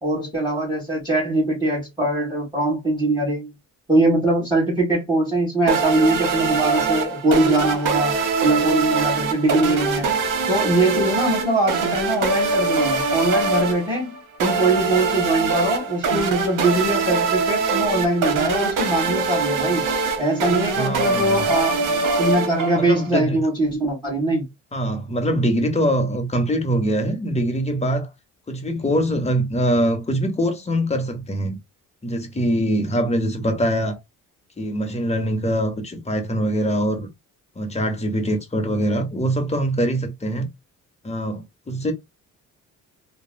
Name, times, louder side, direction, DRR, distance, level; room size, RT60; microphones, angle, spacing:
voice 1, 0.0-3.5 3.9-8.1 8.4-10.1 10.5-19.9 20.2-24.4, right 2 dB, 10° right, 1.7 m, -22 dB
sound 1, 5.7-23.1, right 4 dB, 75° right, 0.9 m, -23 dB
voice 2, 20.7-21.4 22.7-23.4 24.7-28.1 28.5-31.6 32.0-34.0 34.6-37.1 37.5-40.5 41.0-41.9, equal, 20° left, 1.0 m, -23 dB
3.1 x 2.3 x 2.2 m
cardioid pair, 90°, 32 cm